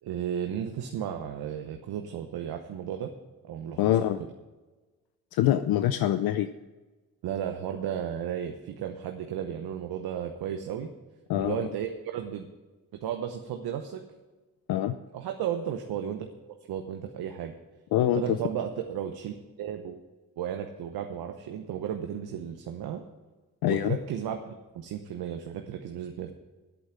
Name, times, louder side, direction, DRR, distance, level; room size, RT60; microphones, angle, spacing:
voice 1, 0.0-3.1 3.4-4.1 7.2-10.9 11.4-12.5 12.9-14.0 15.1-16.3 16.7-17.5 18.1-20.0 20.4-23.0 23.7-26.3, right 9 dB, 75° right, 5 dB, 0.9 m, -34 dB
voice 2, 3.8-4.2 5.3-6.5 11.3-11.7 14.7-14.9 17.9-18.4 23.6-24.0, left 12 dB, 70° left, 11 dB, 0.6 m, -24 dB
8.7 x 8.3 x 7.7 m, 1.2 s
supercardioid pair, 50°, 37 cm